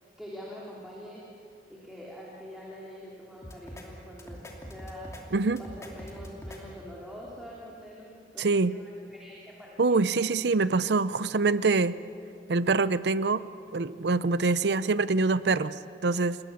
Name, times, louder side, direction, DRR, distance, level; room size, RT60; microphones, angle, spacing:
voice 1, 0.0-1.2 1.7-5.1 5.6-10.0, equal, ahead, -5 dB, 3.2 m, -45 dB
sound 1, 3.4-3.9 4.2-5.2 5.6-6.6, equal, 15° left, 2.8 m, -42 dB
voice 2, 8.4-8.7 9.8-12.0 12.5-13.5 13.7-16.4, right 3 dB, 75° right, 15 dB, 0.6 m, -25 dB
28.5 x 21.5 x 7.2 m, 2.6 s
head